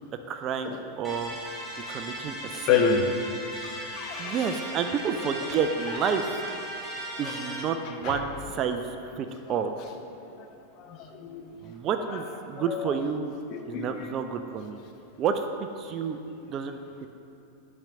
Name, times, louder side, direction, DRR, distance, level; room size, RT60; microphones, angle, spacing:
voice 1, 0.3-1.4 1.9-2.8 4.2-6.3 7.2-8.9 9.1-9.7 11.6-13.3 13.6-14.8 15.2-15.5 15.8-16.2 16.4-16.8, right 6 dB, 35° right, 7 dB, 0.3 m, -30 dB
sound 1, 1.0-7.6, right 1 dB, 5° right, 1.2 m, -37 dB
voice 2, 2.6-3.1 3.6-4.5 7.0-7.3 8.0-8.2 10.2-10.5 10.8-11.5 12.6-12.9 13.5-14.1, left 6 dB, 40° left, 4 dB, 0.6 m, -29 dB
5.9 x 4.2 x 4.8 m, 2.7 s
figure-of-eight pair, 90°, 0 cm